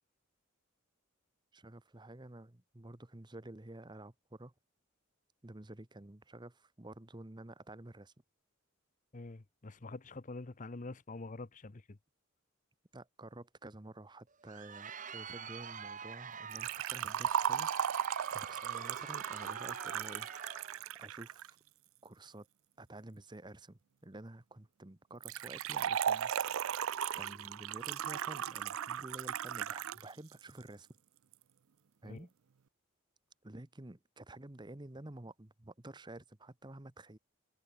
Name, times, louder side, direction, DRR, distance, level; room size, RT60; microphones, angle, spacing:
voice 1, 1.5-4.5 5.4-8.1 12.9-17.7 18.3-20.3 21.0-21.6 22.0-22.5 22.8-26.3 27.1-30.9 32.0-32.3 33.4-37.2, right 1 dB, 20° right, 1.1 m, -50 dB
voice 2, 9.1-12.0 32.0-32.3, left 2 dB, 40° left, 0.8 m, -46 dB
Crowd, 14.3-20.8, right 6 dB, 40° right, 1.6 m, -47 dB
Liquid, 16.5-21.5 25.2-30.0 30.3-30.4 31.3-31.4, right 9 dB, 75° right, 0.4 m, -36 dB
head